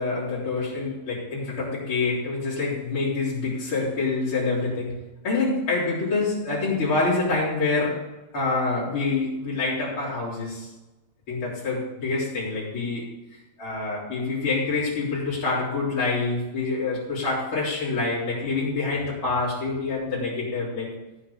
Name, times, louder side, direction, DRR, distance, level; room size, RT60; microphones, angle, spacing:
voice 1, 0.0-5.0 5.2-8.1 8.3-10.7 11.3-13.1 13.6-20.9, left 3 dB, 35° left, -9 dB, 3.5 m, -26 dB
14.0 x 6.2 x 6.9 m, 1.1 s
omnidirectional pair, 4.6 m